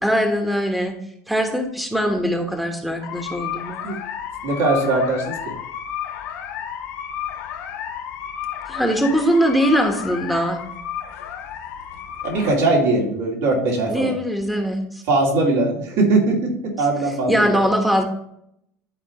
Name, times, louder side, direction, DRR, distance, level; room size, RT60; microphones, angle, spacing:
voice 1, 0.0-1.0 1.3-3.8 8.7-10.6 13.9-15.0 17.3-18.0, equal, ahead, 4 dB, 1.2 m, -21 dB
sound 1, 3.0-12.6, left 9 dB, 70° left, 0.9 m, -32 dB
voice 2, 4.4-5.5 12.2-14.1 15.1-17.6, right 2 dB, 70° right, -3 dB, 2.5 m, -20 dB
11.5 x 4.3 x 3.0 m, 0.75 s
hypercardioid pair, 80°, 9 cm